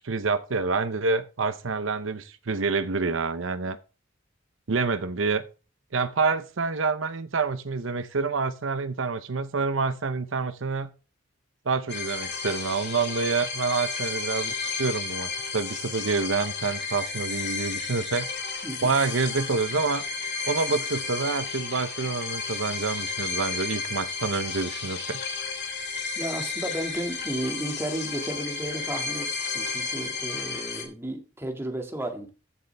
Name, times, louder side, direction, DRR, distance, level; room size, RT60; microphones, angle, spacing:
voice 1, 0.0-3.8 4.7-5.4 5.9-10.9 11.7-18.3 18.8-20.0 20.4-25.2, right 4 dB, 85° right, 0.8 m, -27 dB
sound 1, 11.9-30.8, left 4 dB, 60° left, 3.1 m, -32 dB
voice 2, 26.2-32.3, right 1 dB, 15° right, 2.0 m, -33 dB
15.0 x 6.7 x 3.4 m
head